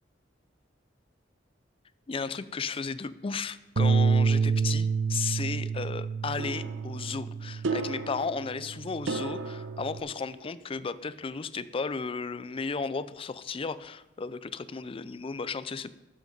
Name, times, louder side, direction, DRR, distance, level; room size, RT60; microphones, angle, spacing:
voice 1, 2.1-15.9, left 5 dB, 30° left, 15 dB, 0.4 m, -34 dB
Bass guitar, 3.8-8.2 8.6-10.0, right 5 dB, 60° right, 0.4 m, -28 dB
sound 1, 6.4-10.9, right 3 dB, 85° right, 0.7 m, -37 dB
13.0 x 6.3 x 5.2 m, 0.99 s
head